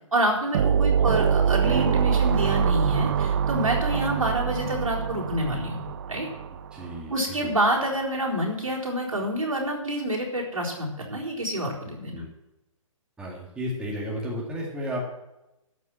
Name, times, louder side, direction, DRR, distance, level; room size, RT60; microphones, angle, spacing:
voice 1, 0.1-5.8 6.1-6.3 7.1-12.2, right 1 dB, 75° right, -2 dB, 4.1 m, -27 dB
sound 1, 0.5-7.0, right 7 dB, 45° right, 0.5 m, -24 dB
voice 2, 0.8-1.1 3.9-4.1 6.7-7.5 12.1-12.3 13.2-15.0, equal, 5° right, -3 dB, 2.1 m, -34 dB
13.0 x 6.2 x 7.5 m, 0.93 s
figure-of-eight pair, 135°, 17 cm